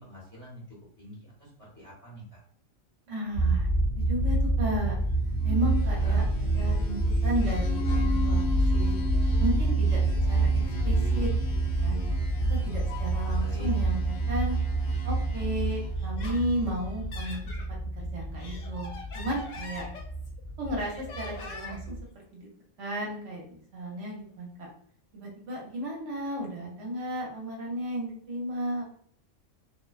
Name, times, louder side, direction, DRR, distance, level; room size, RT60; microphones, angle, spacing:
voice 1, 0.0-2.4 5.7-6.2 10.0-11.3 13.4-13.7, left 1 dB, 15° left, -5 dB, 0.8 m, -44 dB
voice 2, 3.1-3.7 4.0-5.0 5.4-9.0 9.4-10.5 10.8-11.3 11.8-12.0 12.5-14.6 15.0-17.4 17.7-19.8 20.6-21.9 22.3-22.5 22.8-24.7 25.1-28.8, equal, 70° right, -2 dB, 1.0 m, -34 dB
sound 1, 3.3-22.0, right 2 dB, 50° right, 0.6 m, -27 dB
sound 2, 5.2-16.1, left 3 dB, 50° left, 0.6 m, -40 dB
Laughter, 16.0-17.7 18.2-20.4 20.8-21.9, left 3 dB, 80° left, 0.9 m, -44 dB
2.5 x 2.1 x 2.3 m, 0.62 s
omnidirectional pair, 1.3 m